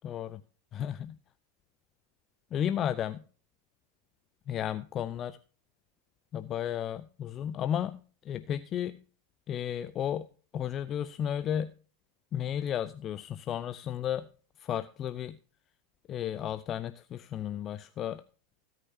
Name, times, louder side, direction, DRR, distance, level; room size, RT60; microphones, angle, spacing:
voice 1, 0.0-0.4 0.7-1.2 2.5-3.2 4.5-5.4 6.3-9.0 9.5-10.3 10.5-11.7 12.3-14.3 14.6-15.4 16.1-18.2, left 10 dB, 35° left, 13 dB, 0.5 m, -33 dB
16.5 x 9.0 x 2.7 m, 0.38 s
figure-of-eight pair, 90°, 0 cm